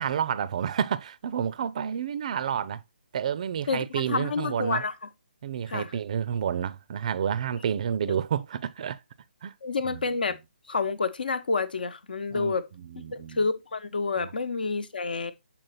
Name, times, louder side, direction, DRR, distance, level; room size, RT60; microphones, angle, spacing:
voice 1, 0.0-2.8 3.1-4.8 5.4-9.0 9.4-9.5 9.9-10.0 12.3-12.6 12.9-13.4, right 8 dB, 40° right, 0.5 m, -29 dB
voice 2, 3.7-4.9 5.7-5.9 8.1-8.2 9.6-10.4 10.7-12.7 13.1-15.3, left 4 dB, 60° left, 1.0 m, -29 dB
7.6 x 4.3 x 4.0 m
figure-of-eight pair, 140°, 6 cm